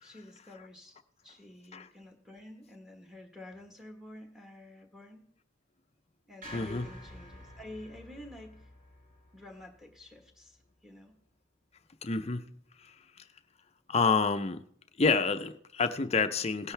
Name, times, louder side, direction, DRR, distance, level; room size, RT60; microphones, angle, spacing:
voice 1, 0.0-1.0 1.2-5.2 6.3-8.7 9.3-11.2, left 1 dB, ahead, 3 dB, 1.4 m, -49 dB
sound 1, 6.4-10.7, left 1 dB, 45° right, 5.0 m, -50 dB
voice 2, 6.5-6.9 12.0-12.5 12.8-12.9 13.9-14.6 15.0-16.7, left 4 dB, 30° left, 9 dB, 0.6 m, -28 dB
17.5 x 10.5 x 3.4 m, 0.64 s
head